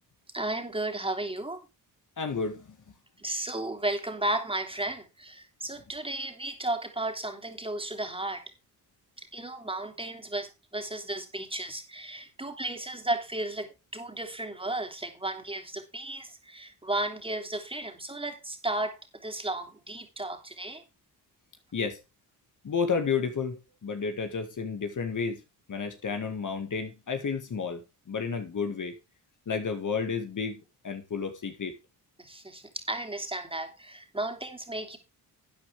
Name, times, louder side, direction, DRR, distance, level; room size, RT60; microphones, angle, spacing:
voice 1, 0.3-1.6 3.2-8.4 9.2-20.8 32.2-35.0, right 1 dB, 15° right, 3.2 m, -34 dB
voice 2, 2.2-2.8 21.7-22.0 22.6-25.4 25.7-27.8 28.1-28.9 29.5-31.7, left 5 dB, 50° left, 1.9 m, -31 dB
12.5 x 9.4 x 3.4 m
cardioid pair, 95°, 40 cm